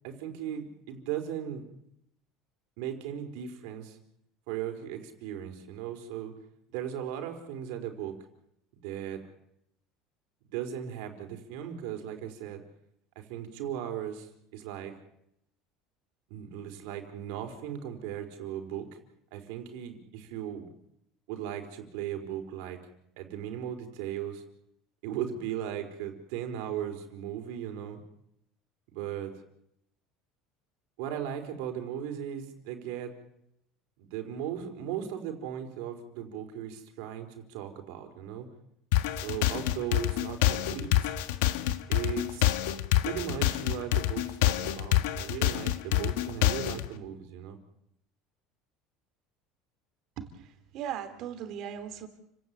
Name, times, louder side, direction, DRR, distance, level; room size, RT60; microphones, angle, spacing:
voice 1, 0.0-1.6 2.8-4.0 4.5-6.3 6.7-8.1 8.8-9.3 10.5-12.6 13.1-14.9 16.3-19.0 19.3-20.7 21.3-22.8 23.2-24.4 25.0-28.0 28.9-29.3 31.0-33.1 34.0-38.5 39.1-41.2 41.9-42.6 43.0-47.6, right 9 dB, 70° right, 4 dB, 4.7 m, -37 dB
sound 1, 38.9-46.9, left 13 dB, 85° left, 1.6 m, -27 dB
voice 2, 50.2-52.1, right 9 dB, 45° right, 9 dB, 3.0 m, -38 dB
30.0 x 17.5 x 8.7 m, 0.80 s
cardioid pair, 170°, 0 cm